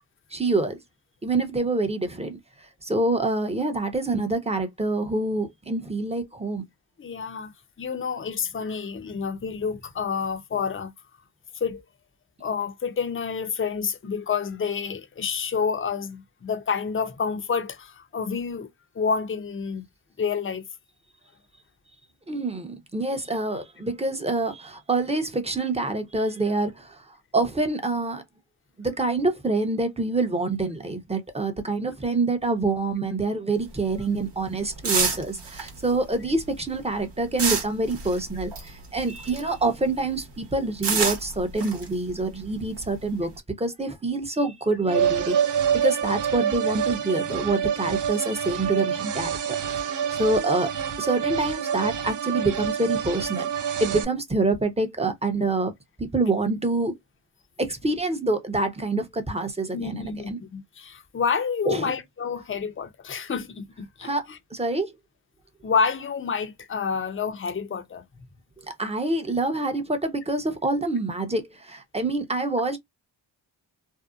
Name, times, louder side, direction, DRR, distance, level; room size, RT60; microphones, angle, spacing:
voice 1, 0.3-0.8 1.2-6.6 22.3-28.2 28.8-50.7 51.0-53.5 53.8-55.7 56.0-56.9 57.6-60.4 61.6-62.0 64.0-64.9 68.6-72.8, right 2 dB, 15° right, 0.7 m, -26 dB
voice 2, 7.0-7.5 7.8-10.9 11.6-11.8 12.4-18.7 18.9-19.9 20.2-20.6 59.7-64.4 65.6-68.1, left 6 dB, 30° left, 0.6 m, -28 dB
sound 1, 33.6-39.7 39.9-43.4, right 4 dB, 65° right, 1.0 m, -29 dB
sound 2, 44.9-54.0, right 8 dB, 45° right, 0.5 m, -27 dB
2.7 x 2.1 x 2.3 m
cardioid pair, 50°, 45 cm